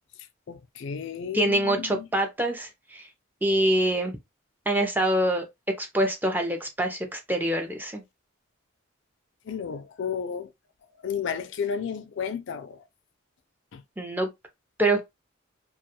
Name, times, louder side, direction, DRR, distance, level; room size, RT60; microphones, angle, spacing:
voice 1, 0.5-2.1 9.5-10.5 11.0-12.8 13.7-13.8, left 7 dB, 60° left, 0.3 m, -32 dB
voice 2, 1.3-3.1 3.4-4.2 4.7-5.4 5.8-8.0 14.0-14.3 14.8-15.1, right 1 dB, 10° right, 0.4 m, -25 dB
2.3 x 2.2 x 2.7 m
head